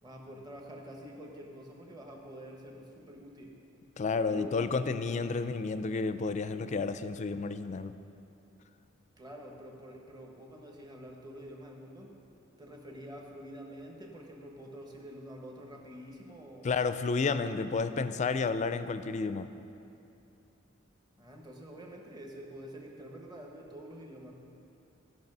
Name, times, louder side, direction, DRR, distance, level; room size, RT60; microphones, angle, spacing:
voice 1, 0.0-3.6 4.3-5.2 9.2-12.2 12.6-16.7 21.2-24.4, equal, 20° right, 0 dB, 1.1 m, -47 dB
voice 2, 4.0-7.9 16.6-19.5, left 4 dB, 35° left, 12 dB, 0.4 m, -31 dB
14.5 x 5.4 x 5.4 m, 2.7 s
head